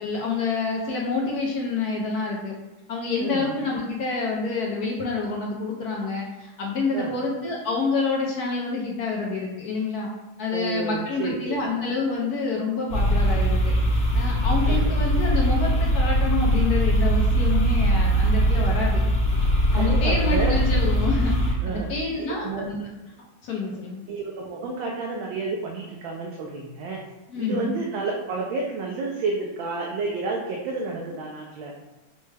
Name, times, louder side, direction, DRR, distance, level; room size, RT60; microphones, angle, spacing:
voice 1, 0.0-2.5 2.9-10.1 10.4-19.0 19.7-21.3 21.7-22.9 23.4-24.0 27.3-27.7, left 3 dB, 65° left, -2 dB, 1.0 m, -27 dB
voice 2, 10.5-11.6 14.7-14.9 19.7-20.5 21.6-21.9 22.2-22.7 24.1-27.0 27.4-31.7, right 3 dB, 80° right, -1 dB, 1.3 m, -30 dB
sound 1, 12.9-21.5, equal, 45° left, 1.3 m, -21 dB
5.2 x 2.3 x 3.2 m, 1.1 s
omnidirectional pair, 2.2 m